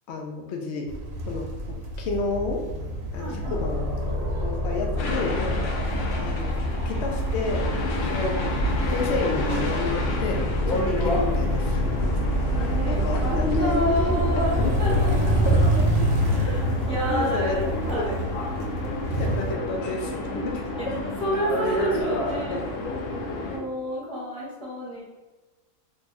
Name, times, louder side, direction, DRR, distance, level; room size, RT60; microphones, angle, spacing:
voice 1, 0.1-0.9 1.3-1.5 2.0-2.6 3.1-3.9 4.4-5.7 6.2-6.5 6.9-7.7 8.0-8.5 8.9-10.4 10.7-12.0 12.9-15.0 17.1-18.0 19.2-20.2 20.4-20.6 22.5-22.6 23.3-23.6, left 3 dB, 65° left, 1 dB, 0.7 m, -30 dB
sound 1, 0.9-19.5, right 1 dB, 70° right, 1.0 m, -28 dB
voice 2, 3.1-3.6 5.5-5.6 8.1-8.2 10.8-11.0 12.5-15.3 16.3-18.2 20.2-20.5 20.8-22.7 23.5-25.0, equal, 5° left, -8 dB, 0.9 m, -30 dB
sound 2, 3.4-15.6, left 2 dB, 20° left, 0.5 m, -29 dB
sound 3, 5.0-23.6, left 2 dB, 85° left, 1.1 m, -31 dB
3.2 x 2.6 x 3.2 m, 1.2 s
omnidirectional pair, 1.5 m